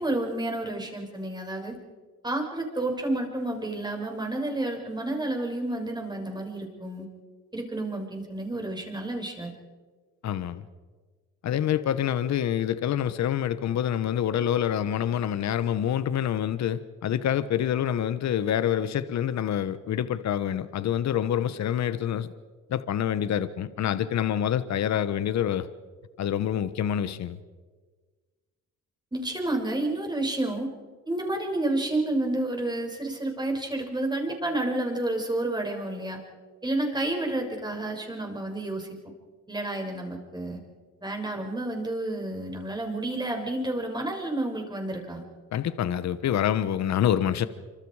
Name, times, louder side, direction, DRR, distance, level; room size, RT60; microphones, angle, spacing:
voice 1, 0.0-1.8 2.2-7.1 7.5-9.5 29.1-30.7 31.1-36.2 36.6-39.0 39.5-40.6 41.0-45.2, right 2 dB, 15° right, 6.6 m, -30 dB
voice 2, 10.2-10.7 11.4-22.3 22.7-25.7 26.2-27.4 45.5-47.5, left 10 dB, 65° left, 1.2 m, -26 dB
27.5 x 26.0 x 4.9 m
cardioid pair, 90°, 30 cm